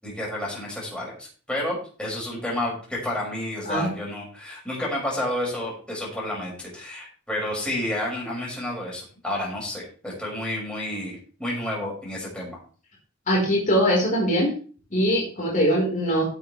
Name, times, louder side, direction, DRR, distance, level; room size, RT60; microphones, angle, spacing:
voice 1, 0.0-12.6, left 1 dB, 5° left, -5 dB, 6.4 m, -30 dB
voice 2, 13.3-14.5 14.9-16.2, equal, 40° left, -3 dB, 4.5 m, -22 dB
17.5 x 7.8 x 3.4 m, 0.40 s
head